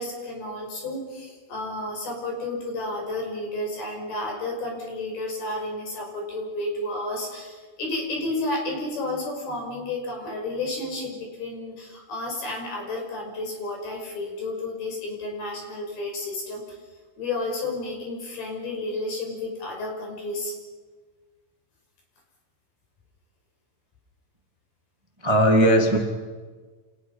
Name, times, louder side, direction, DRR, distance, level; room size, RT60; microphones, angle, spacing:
voice 1, 0.0-16.8 17.2-20.5, left 2 dB, 55° left, 1 dB, 7.6 m, -31 dB
voice 2, 25.2-26.0, equal, 10° right, 2 dB, 1.5 m, -18 dB
29.5 x 29.0 x 5.7 m, 1.4 s
omnidirectional pair, 5.3 m